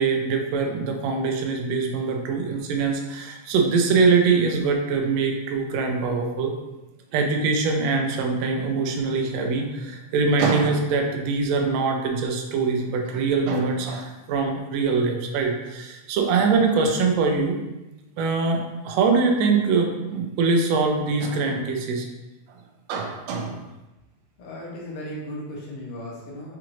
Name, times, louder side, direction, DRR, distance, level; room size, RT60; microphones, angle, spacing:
voice 1, 0.0-6.5 7.1-17.6 18.2-22.1 22.9-23.6, right 4 dB, 75° right, 2 dB, 1.7 m, -23 dB
voice 2, 24.4-26.6, equal, 90° left, -5 dB, 2.3 m, -36 dB
5.8 x 2.5 x 3.0 m, 1.0 s
omnidirectional pair, 3.3 m